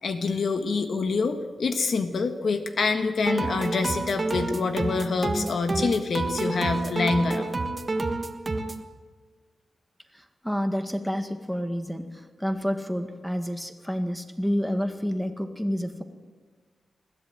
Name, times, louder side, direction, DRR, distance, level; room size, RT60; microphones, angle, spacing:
voice 1, 0.0-7.5, left 4 dB, 65° left, 7 dB, 1.5 m, -26 dB
sound 1, 3.2-8.8, right 2 dB, 30° right, 1.4 m, -29 dB
voice 2, 10.1-16.0, equal, ahead, 7 dB, 1.8 m, -29 dB
21.0 x 14.0 x 9.2 m, 1.4 s
wide cardioid pair, 110°, 0 cm